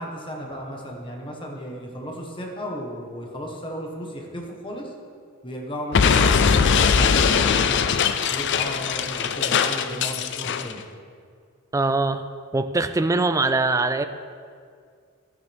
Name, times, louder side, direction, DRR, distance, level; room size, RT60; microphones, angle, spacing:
voice 1, 0.0-4.9 5.4-7.8 8.3-10.8, equal, 20° left, 0 dB, 1.4 m, -34 dB
Explosion, 5.9-10.7, left 6 dB, 55° left, 0.5 m, -20 dB
voice 2, 11.7-12.2 12.5-14.0, right 3 dB, 15° right, 10 dB, 0.4 m, -22 dB
12.5 x 10.5 x 3.6 m, 2.2 s
head